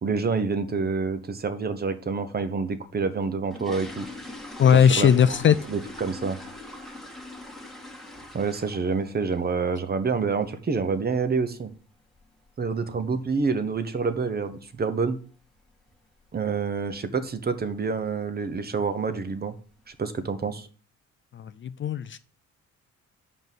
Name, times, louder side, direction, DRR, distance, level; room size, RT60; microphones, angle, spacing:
voice 1, 0.0-4.1 4.7-6.4 8.3-11.7 12.6-15.2 16.3-19.5 19.9-20.7, right 4 dB, 30° right, 11 dB, 0.9 m, -27 dB
sound 1, 3.1-9.0 9.3-9.6 10.0-10.1 10.4-10.6 10.9-11.2 11.4-11.5 12.1-12.2 12.5-12.6 13.1-13.4 13.7-13.8 14.2-14.4 14.7-14.8 15.3-15.4 16.0-16.3 16.6-16.9 17.3-17.4 17.8-17.9 18.7-18.8 19.2-19.7 20.2-20.3, left 2 dB, ahead, 2.0 m, -41 dB
voice 2, 4.6-5.6 21.6-22.2, left 8 dB, 40° left, 13 dB, 0.4 m, -18 dB
5.4 x 5.3 x 6.1 m, 0.39 s
cardioid pair, 90°, 30 cm